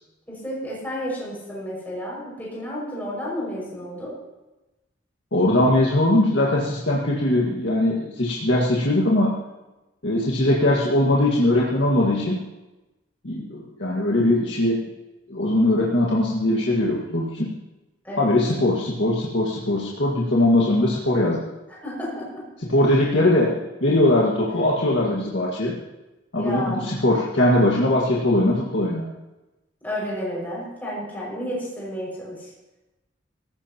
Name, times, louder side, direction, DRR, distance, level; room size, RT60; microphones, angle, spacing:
voice 1, 0.3-4.1 18.0-18.3 21.8-22.4 26.4-26.9 29.8-32.4, equal, 10° left, -6 dB, 6.1 m, -31 dB
voice 2, 5.3-9.3 10.0-12.4 13.2-14.8 15.3-17.5 18.2-21.5 22.6-25.8 26.3-29.1, left 1 dB, 70° left, -4 dB, 1.9 m, -21 dB
17.5 x 15.5 x 3.0 m, 1.0 s
head